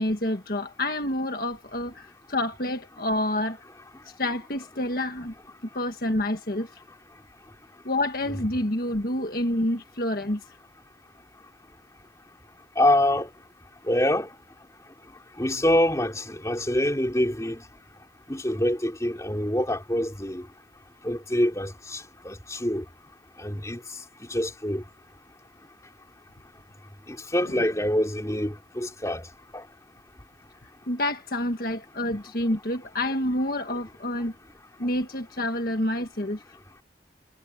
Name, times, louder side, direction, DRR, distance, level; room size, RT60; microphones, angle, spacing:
voice 1, 0.0-3.6 4.2-5.3 5.7-6.7 7.8-10.4 27.4-27.6 30.9-34.3 34.8-36.4, left 1 dB, 55° left, 1.6 m, -28 dB
voice 2, 12.8-13.3 13.9-14.3 15.4-17.6 18.3-20.4 21.0-22.8 23.4-23.8 24.3-24.8 27.3-29.2 29.5-29.6 33.7-33.8, left 1 dB, 15° left, 3.8 m, -25 dB
head